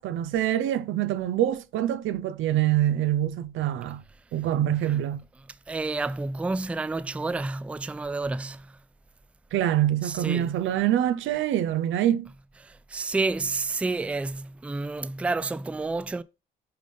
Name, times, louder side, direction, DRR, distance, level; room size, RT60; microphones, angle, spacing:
voice 1, 0.0-4.0 4.3-5.2 9.5-12.3, right 12 dB, 80° right, 0.6 m, -25 dB
voice 2, 5.7-8.8 10.0-10.5 12.6-16.2, right 3 dB, 5° right, 0.3 m, -30 dB
8.7 x 3.8 x 3.5 m
cardioid pair, 90°, 20 cm